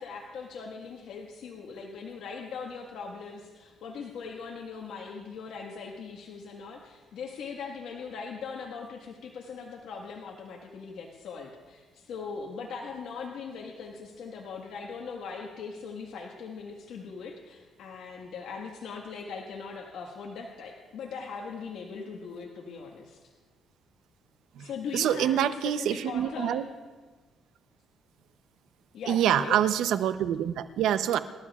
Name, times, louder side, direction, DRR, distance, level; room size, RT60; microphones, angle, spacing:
voice 1, 0.0-23.2 24.6-26.6 28.9-29.6, left 5 dB, 80° left, 0 dB, 1.5 m, -40 dB
voice 2, 24.6-26.6 29.1-31.2, right 10 dB, 80° right, 11 dB, 0.7 m, -26 dB
27.5 x 13.0 x 2.4 m, 1.3 s
cardioid pair, 85°, 0 cm